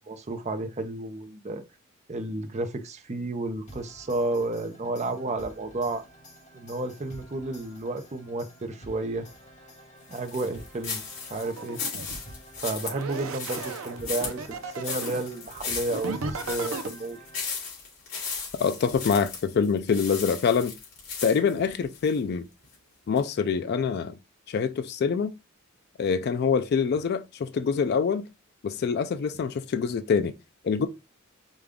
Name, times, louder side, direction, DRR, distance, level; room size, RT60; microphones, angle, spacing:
voice 1, 0.1-1.6 2.1-6.0 6.5-9.3 10.1-11.0 11.3-11.8 12.6-17.2, right 2 dB, 35° right, 0.6 m, -32 dB
sound 1, 3.7-17.8, equal, 35° left, 1.2 m, -50 dB
sound 2, 10.1-22.2 22.6-22.7 23.2-23.3, left 5 dB, 70° left, 2.6 m, -36 dB
sound 3, 11.3-12.2 12.8-15.2 15.9-16.9, right 4 dB, 80° right, 0.7 m, -35 dB
voice 2, 18.6-20.7 21.2-22.5 23.1-24.2 24.5-25.3 26.0-28.3 28.6-30.3 30.6-30.9, left 6 dB, 50° left, 0.3 m, -25 dB
5.1 x 2.3 x 3.5 m
head